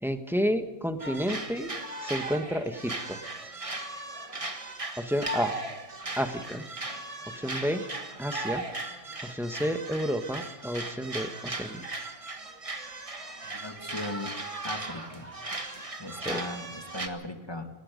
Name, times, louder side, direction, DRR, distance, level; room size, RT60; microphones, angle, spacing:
voice 1, 0.0-1.7 2.0-3.2 5.0-5.6 6.2-6.6 7.3-7.8 8.2-8.6 9.2-11.9 16.2-16.4, equal, ahead, 7 dB, 1.4 m, -30 dB
sound 1, 1.0-17.1, right 2 dB, 25° right, 1.6 m, -37 dB
voice 2, 13.5-14.3 14.6-15.3 16.0-17.7, left 1 dB, 15° left, 5 dB, 2.2 m, -38 dB
27.5 x 18.5 x 5.3 m, 1.1 s
omnidirectional pair, 1.5 m